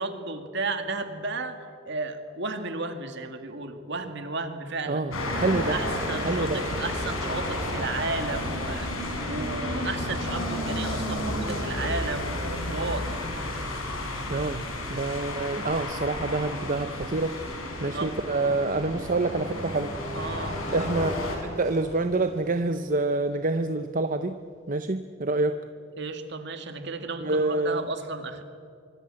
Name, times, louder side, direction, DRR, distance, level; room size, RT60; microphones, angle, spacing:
voice 1, 0.0-5.0 5.7-8.9 9.3-13.1 17.9-18.1 20.1-20.6 26.0-28.4, right 3 dB, 55° right, 7 dB, 2.2 m, -33 dB
voice 2, 4.9-5.8 6.2-6.6 14.3-14.6 14.9-17.4 17.8-19.9 20.7-21.1 21.4-24.4 24.7-25.6 27.2-27.8, right 2 dB, 40° right, 9 dB, 0.7 m, -27 dB
sound 1, 5.1-21.4, left 1 dB, 85° left, 6.0 m, -32 dB
sound 2, 18.3-24.3, left 1 dB, 35° left, 4.1 m, -49 dB
25.5 x 24.5 x 7.7 m, 2.4 s
head